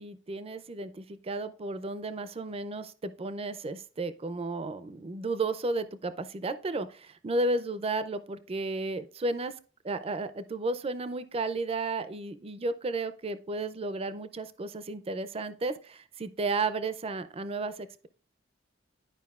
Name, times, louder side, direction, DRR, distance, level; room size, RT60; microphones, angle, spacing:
voice 1, 0.0-9.6 9.8-18.1, right 2 dB, 30° right, 13 dB, 0.5 m, -33 dB
11.5 x 5.0 x 2.4 m, 0.40 s
head